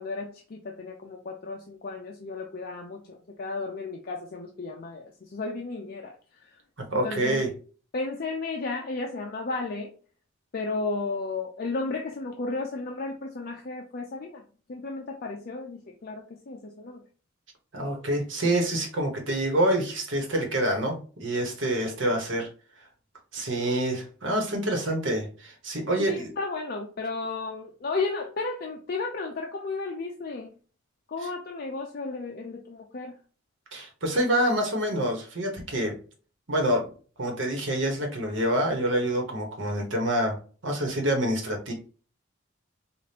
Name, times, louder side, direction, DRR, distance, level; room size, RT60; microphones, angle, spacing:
voice 1, 0.0-6.6 6.9-7.5 7.9-9.9 10.5-14.4 14.7-17.0 24.8-24.9 26.1-30.5 31.1-33.2, left 3 dB, 50° left, 1 dB, 0.5 m, -34 dB
voice 2, 6.9-7.5 17.7-22.5 23.3-26.3 33.7-36.0 36.5-36.9 37.2-40.4 40.6-41.7, right 1 dB, 65° right, 2 dB, 1.2 m, -27 dB
5.1 x 2.5 x 2.8 m, 0.38 s
head